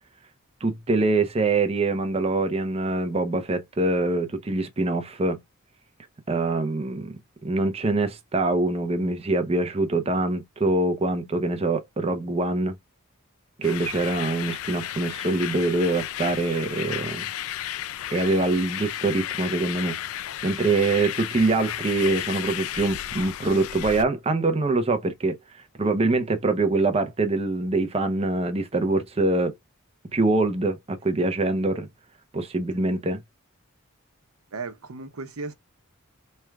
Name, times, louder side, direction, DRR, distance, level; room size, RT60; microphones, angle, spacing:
voice 1, 0.6-5.4 6.3-12.7 13.6-17.2 18.1-20.0 20.4-25.4 25.8-29.6 30.1-31.9 32.3-33.2, right 2 dB, 30° right, 0.6 m, -24 dB
sound 1, 13.6-24.0, left 12 dB, 80° left, 0.4 m, -33 dB
voice 2, 34.5-35.5, right 4 dB, 90° right, 0.8 m, -35 dB
4.4 x 3.2 x 2.3 m
head